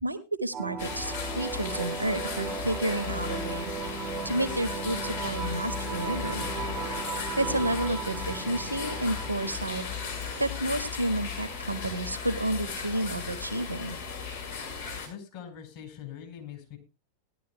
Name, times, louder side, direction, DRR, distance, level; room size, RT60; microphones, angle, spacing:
voice 1, 0.0-6.5 7.4-14.0, right 1 dB, 85° right, 10 dB, 1.3 m, -31 dB
sound 1, 0.5-11.5, right 6 dB, 25° right, 0.9 m, -37 dB
sound 2, 0.8-15.1, left 6 dB, 65° left, 4.4 m, -36 dB
voice 2, 15.1-16.8, left 9 dB, 50° left, 3 dB, 4.1 m, -43 dB
18.0 x 11.0 x 2.2 m, 0.27 s
figure-of-eight pair, 90°, 0 cm